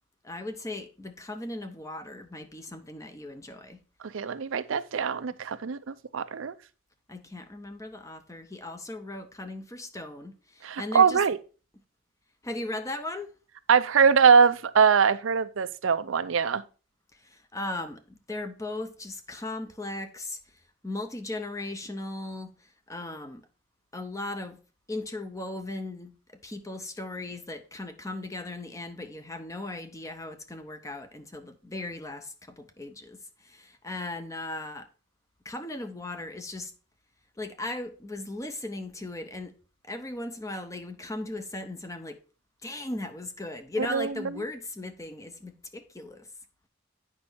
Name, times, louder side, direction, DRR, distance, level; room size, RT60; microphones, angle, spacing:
voice 1, 0.2-3.8 7.1-11.2 12.4-13.4 17.3-20.4 20.8-22.5 22.9-23.5 23.9-24.6 24.9-26.1 26.4-34.9 35.4-36.7 37.4-39.5 39.8-42.2 42.6-46.3, left 2 dB, 15° left, 0.7 m, -37 dB
voice 2, 4.1-6.5 10.6-11.4 13.7-16.6 43.9-44.4, right 6 dB, 75° right, 0.5 m, -22 dB
8.6 x 5.3 x 4.4 m
head